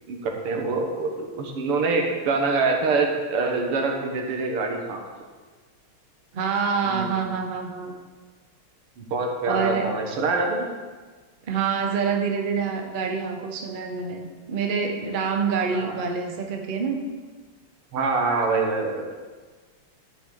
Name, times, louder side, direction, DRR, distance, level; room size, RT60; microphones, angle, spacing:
voice 1, 0.1-5.0 6.8-7.2 9.0-10.7 15.7-15.9 17.9-19.2, right 3 dB, 85° right, 2 dB, 2.2 m, -25 dB
voice 2, 6.3-8.0 9.5-9.9 11.4-17.0, right 6 dB, 40° right, 3 dB, 0.7 m, -26 dB
12.5 x 7.2 x 3.9 m, 1.4 s
omnidirectional pair, 2.4 m